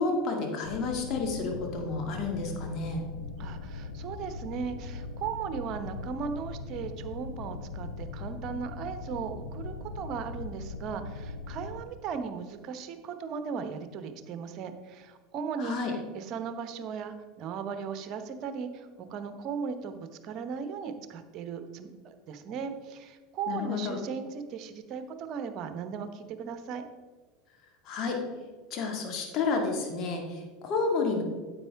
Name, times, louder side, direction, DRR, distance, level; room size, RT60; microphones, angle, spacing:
voice 1, 0.0-3.0 15.6-15.9 23.5-24.0 27.9-28.2 28.7-31.2, left 4 dB, 45° left, 2 dB, 2.1 m, -30 dB
sound 1, 0.6-11.8, left 3 dB, 90° left, 0.6 m, -40 dB
voice 2, 3.4-26.8, right 6 dB, 50° right, 9 dB, 1.0 m, -37 dB
9.5 x 8.1 x 3.5 m, 1.4 s
hypercardioid pair, 80°, 0 cm